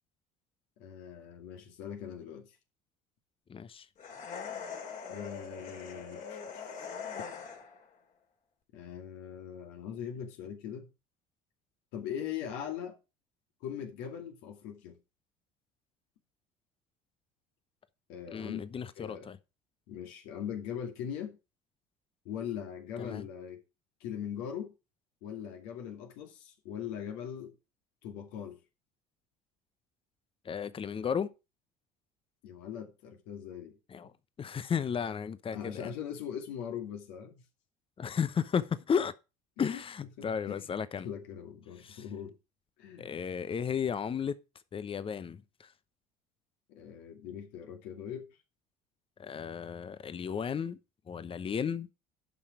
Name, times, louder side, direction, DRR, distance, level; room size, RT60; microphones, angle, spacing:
voice 1, 0.8-2.5 5.1-6.9 8.7-10.9 11.9-13.0 13.6-15.0 18.1-18.6 19.0-19.3 19.9-21.4 22.2-23.6 24.0-24.7 25.2-27.5 28.0-28.6 32.4-33.8 35.5-37.4 39.6-39.8 40.2-40.7 41.0-42.4 42.8-43.1 46.7-48.3, left 9 dB, 70° left, 2.4 m, -41 dB
voice 2, 3.5-3.9 18.3-19.4 23.0-23.2 30.4-31.3 33.9-34.1 34.4-35.9 38.0-39.1 39.6-41.1 41.8-42.0 43.0-44.4 44.7-45.7 49.2-50.8 51.1-51.9, left 7 dB, 30° left, 0.9 m, -34 dB
sound 1, 4.0-7.9, left 6 dB, 50° left, 3.2 m, -42 dB
11.0 x 5.8 x 4.9 m
hypercardioid pair, 70°, 18 cm